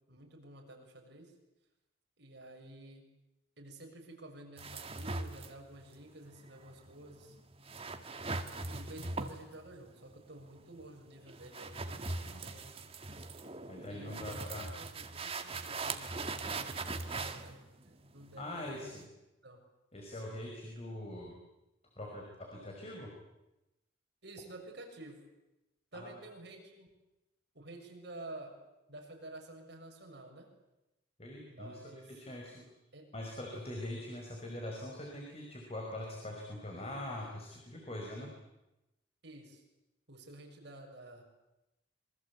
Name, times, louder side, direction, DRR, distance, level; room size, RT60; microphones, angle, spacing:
voice 1, 0.1-1.3 2.2-3.0 3.6-7.4 8.7-12.8 13.7-16.2 16.5-18.9 19.4-19.6 24.2-25.2 25.9-26.9 27.5-28.6 28.9-30.5 31.5-32.1 32.9-33.1 39.2-39.6 40.1-41.2, right 1 dB, 60° right, 2 dB, 7.0 m, -51 dB
sound 1, 4.6-19.0, right 3 dB, 30° right, 1.8 m, -41 dB
voice 2, 13.7-14.7 18.4-19.0 19.9-21.3 22.0-23.1 25.9-26.2 31.2-32.7 33.1-38.3, left 1 dB, 35° left, 0 dB, 5.3 m, -43 dB
27.0 x 23.5 x 8.5 m, 0.94 s
head